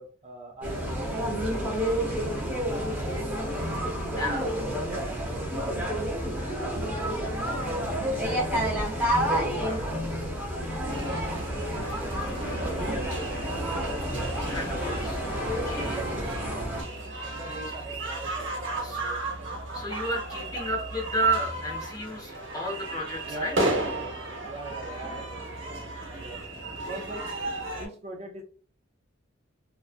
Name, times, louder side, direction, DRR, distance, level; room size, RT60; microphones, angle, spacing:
voice 1, 0.0-3.6 4.1-5.9 6.4-7.0 7.9-9.0 9.4-10.0 12.0-13.1 14.1-14.3 15.8-16.8 17.2-19.3 20.3-20.5 23.2-24.1 24.4-27.3 27.8-28.4, right 2 dB, 30° right, 0 dB, 0.5 m, -43 dB
sound 1, 0.6-16.8, equal, 10° right, 0.8 m, -30 dB
sound 2, 10.6-17.6, right 1 dB, 70° left, 1.2 m, -43 dB
sound 3, 10.9-27.9, right 2 dB, 60° right, 0.9 m, -35 dB
voice 2, 14.5-16.1 17.3-17.4 18.8-19.0 19.7-23.5, right 2 dB, 20° left, -1 dB, 0.7 m, -32 dB
2.7 x 2.3 x 2.4 m, 0.43 s
head